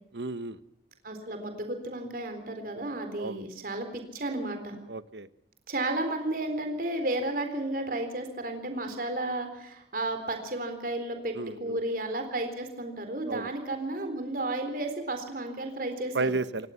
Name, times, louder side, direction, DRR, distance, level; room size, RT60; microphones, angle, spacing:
voice 1, 0.1-0.6 3.2-3.4 4.9-5.3 11.3-11.8 13.3-13.5 16.1-16.7, right 3 dB, 75° right, 13 dB, 1.2 m, -32 dB
voice 2, 1.0-4.8 5.7-11.3 11.6-16.4, right 2 dB, 50° right, 6 dB, 4.0 m, -33 dB
27.5 x 19.0 x 5.8 m, 0.81 s
head